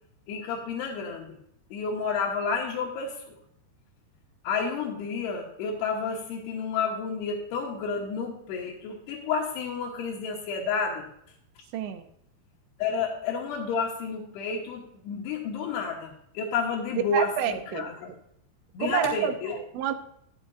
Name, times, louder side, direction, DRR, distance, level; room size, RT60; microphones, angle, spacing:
voice 1, 0.3-1.4 1.7-3.3 4.4-11.1 12.8-18.1 18.7-19.6, left 5 dB, 75° left, -4 dB, 3.0 m, -30 dB
voice 2, 11.7-12.0 17.1-17.9 18.8-19.3 19.7-20.0, right 8 dB, 80° right, 9 dB, 3.0 m, -28 dB
11.0 x 10.0 x 2.6 m, 0.73 s
omnidirectional pair, 5.1 m